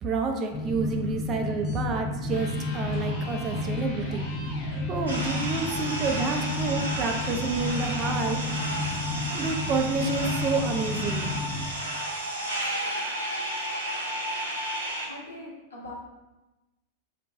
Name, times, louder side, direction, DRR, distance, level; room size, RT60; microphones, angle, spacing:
voice 1, 0.0-4.3 4.8-8.4 9.3-11.3, right 4 dB, 30° right, 3 dB, 0.3 m, -29 dB
sound 1, 0.5-11.7, left 2 dB, 20° left, 0.6 m, -32 dB
Electric guitar, 2.2-10.2, left 1 dB, 50° left, 1.0 m, -43 dB
sound 2, 5.1-15.1, right 1 dB, 75° right, 0.6 m, -32 dB
voice 2, 15.0-15.9, left 1 dB, 75° left, -4 dB, 0.8 m, -42 dB
2.4 x 2.2 x 3.9 m, 1.1 s
figure-of-eight pair, 90°, 0 cm